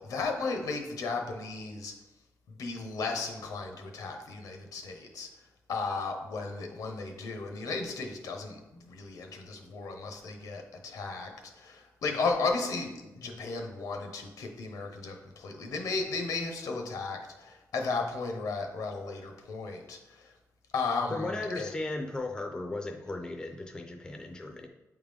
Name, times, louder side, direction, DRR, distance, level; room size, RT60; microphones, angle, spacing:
voice 1, 0.0-1.9 2.5-5.3 5.7-20.3 20.7-21.7, left 4 dB, 80° left, 3 dB, 0.9 m, -35 dB
voice 2, 21.1-24.7, left 2 dB, 15° left, 4 dB, 0.4 m, -36 dB
8.5 x 3.6 x 3.5 m, 1.0 s
wide cardioid pair, 180°, 6 cm